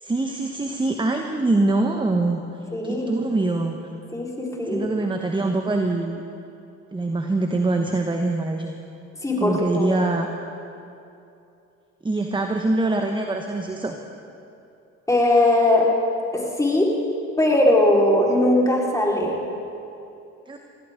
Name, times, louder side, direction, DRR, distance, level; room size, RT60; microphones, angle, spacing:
voice 1, 0.0-2.4 2.8-3.8 4.7-6.2 6.9-8.7 9.4-10.3 12.0-13.9 20.5-20.6, right 2 dB, 10° right, 4 dB, 1.1 m, -24 dB
voice 2, 2.7-3.1 4.1-4.9 9.2-9.9 15.1-15.9 16.3-16.9 17.4-19.3, left 1 dB, 10° left, -3 dB, 4.3 m, -20 dB
22.0 x 15.5 x 3.8 m, 2.7 s
hypercardioid pair, 70°, 40 cm